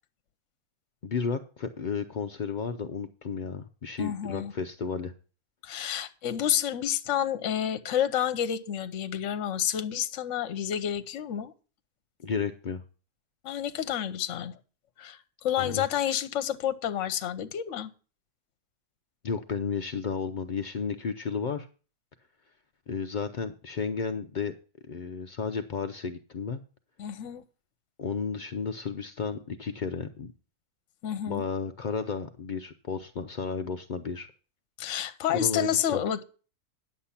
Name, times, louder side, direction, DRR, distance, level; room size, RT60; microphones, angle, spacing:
voice 1, 1.0-5.1 12.2-12.8 15.6-15.9 19.2-21.7 22.9-24.5 24.9-26.6 28.0-30.3 31.3-34.3 35.3-36.0, left 5 dB, 80° left, 6 dB, 0.4 m, -33 dB
voice 2, 4.0-4.5 5.6-11.5 13.4-14.6 15.0-17.9 27.0-27.4 31.0-31.4 34.8-36.2, left 10 dB, 60° left, 11 dB, 1.0 m, -29 dB
10.0 x 7.4 x 5.6 m, 0.37 s
omnidirectional pair, 1.6 m